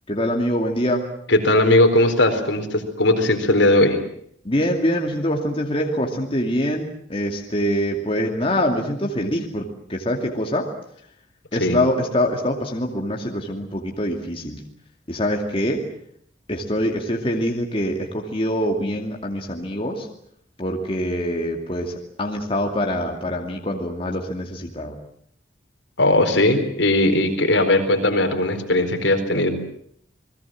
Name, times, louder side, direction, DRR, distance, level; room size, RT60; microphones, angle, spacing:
voice 1, 0.1-1.0 4.4-10.7 11.5-14.6 15.1-15.8 16.5-20.1 20.6-21.9 22.2-25.0, equal, 30° left, 1 dB, 2.6 m, -24 dB
voice 2, 1.3-4.0 11.6-11.8 26.0-29.5, left 1 dB, 65° left, 5 dB, 4.3 m, -18 dB
29.5 x 20.5 x 7.7 m, 0.65 s
head